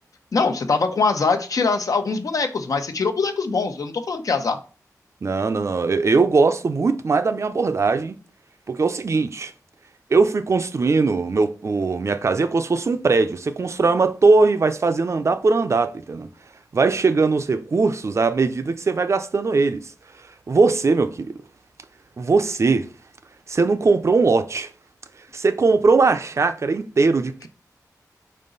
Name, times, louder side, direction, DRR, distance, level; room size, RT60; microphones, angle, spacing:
voice 1, 0.3-4.6, left 4 dB, 60° left, 1.0 m, -22 dB
voice 2, 5.2-8.2 8.7-9.5 10.1-16.3 16.7-19.9 20.5-21.4 22.2-22.9 23.5-24.7 25.3-27.5, right 4 dB, 45° right, 0.6 m, -20 dB
5.5 x 4.9 x 3.9 m
wide cardioid pair, 125°, 7 cm